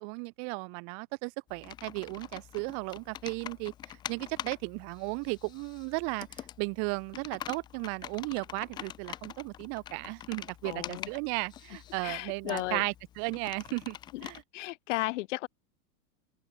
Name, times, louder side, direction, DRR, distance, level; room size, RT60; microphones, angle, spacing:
voice 1, 0.0-14.0 14.2-14.4, right 40 dB or more, 35° right, 1.7 m, -35 dB
Computer keyboard, 1.5-14.4, left 11 dB, 10° left, 0.5 m, -45 dB
voice 2, 10.6-11.1 12.0-12.9 14.1-14.3 14.5-15.5, left 19 dB, 50° left, 1.1 m, -34 dB
open air
supercardioid pair, 160°, 45 cm